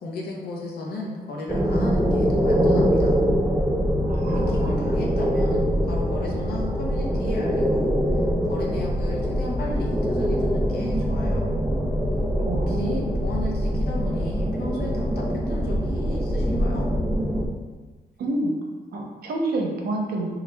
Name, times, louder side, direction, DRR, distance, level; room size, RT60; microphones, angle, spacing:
voice 1, 0.0-3.2 4.3-8.0 8.4-11.5 12.7-16.9, left 2 dB, 80° left, -2 dB, 0.7 m, -34 dB
sound 1, 1.5-17.5, equal, 5° right, 0.3 m, -23 dB
voice 2, 4.1-4.9 12.4-13.1 18.2-18.6 18.9-20.3, right 2 dB, 70° right, 0 dB, 0.6 m, -28 dB
3.2 x 2.4 x 3.2 m, 1.3 s
cardioid pair, 130°, 16 cm